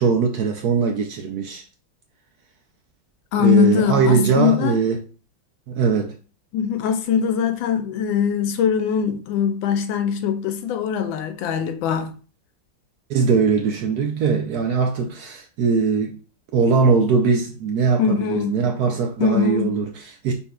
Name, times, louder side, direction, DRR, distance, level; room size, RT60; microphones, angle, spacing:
voice 1, 0.0-1.6 3.4-5.0 5.7-6.1 13.1-16.2 16.5-20.3, right 5 dB, 70° right, 0.9 m, -20 dB
voice 2, 3.3-4.8 6.5-12.1 18.0-18.6 19.2-19.8, left 7 dB, 85° left, 1.4 m, -21 dB
5.4 x 3.5 x 2.3 m
omnidirectional pair, 2.1 m